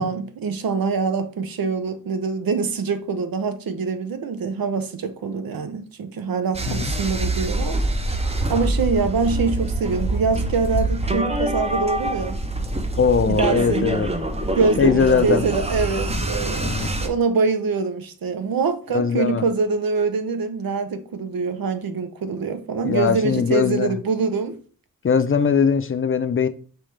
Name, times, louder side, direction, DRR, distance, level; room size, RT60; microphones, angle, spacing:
voice 1, 0.0-7.8 8.5-12.4 13.3-13.8 14.6-16.7 17.0-24.6, right 4 dB, 85° right, 0.6 m, -24 dB
sound 1, 6.5-17.1, right 1 dB, 20° right, 0.6 m, -25 dB
voice 2, 13.0-14.1 14.8-15.5 16.6-16.9 18.9-19.5 22.8-24.0 25.0-26.5, left 6 dB, 40° left, 0.4 m, -20 dB
5.1 x 3.1 x 3.2 m
wide cardioid pair, 85°, 34 cm